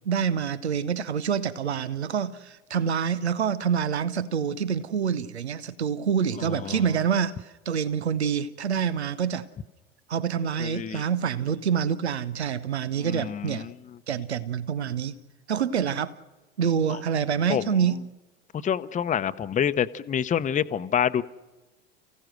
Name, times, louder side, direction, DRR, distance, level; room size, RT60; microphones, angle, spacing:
voice 1, 0.0-9.5 10.1-13.7 14.1-15.2 15.5-16.1 16.6-18.0, right 7 dB, 85° right, 0.8 m, -27 dB
voice 2, 6.4-6.9 10.6-11.0 13.0-13.7 16.9-17.0 17.5-17.9 18.6-21.2, left 8 dB, 25° left, 0.8 m, -27 dB
29.5 x 16.0 x 6.4 m
figure-of-eight pair, 75°, 32 cm